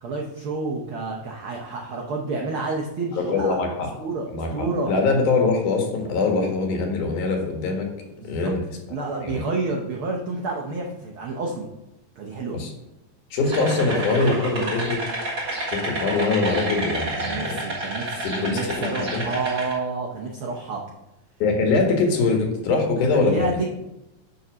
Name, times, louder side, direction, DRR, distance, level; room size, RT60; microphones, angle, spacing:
voice 1, 0.0-3.6 4.0-4.9 8.2-8.5 8.9-11.7 12.2-12.6 13.7-14.8 17.2-20.8 23.1-23.7, right 3 dB, 75° right, -1 dB, 1.2 m, -29 dB
voice 2, 3.1-3.9 4.3-7.9 8.2-8.6 9.2-9.4 12.5-12.7 13.3-15.0 15.7-17.6 18.2-19.3 21.4-23.7, left 3 dB, 85° left, 2 dB, 3.0 m, -23 dB
sound 1, 13.4-19.7, right 2 dB, 40° right, 3.7 m, -30 dB
9.4 x 3.9 x 6.1 m, 0.94 s
omnidirectional pair, 3.5 m